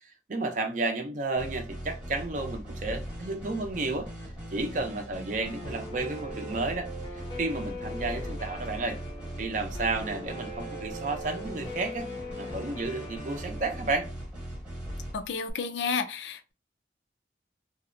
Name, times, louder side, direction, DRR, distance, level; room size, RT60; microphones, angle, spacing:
voice 1, 0.3-4.1 4.5-9.0 9.4-12.1 12.4-14.1, right 3 dB, 45° right, 0.5 m, -32 dB
sound 1, 1.4-15.5, equal, 5° right, 0.9 m, -40 dB
Guitar, 5.4-14.1, equal, 25° left, 0.6 m, -41 dB
voice 2, 15.1-16.5, left 5 dB, 85° left, 0.4 m, -31 dB
2.6 x 2.1 x 2.5 m
head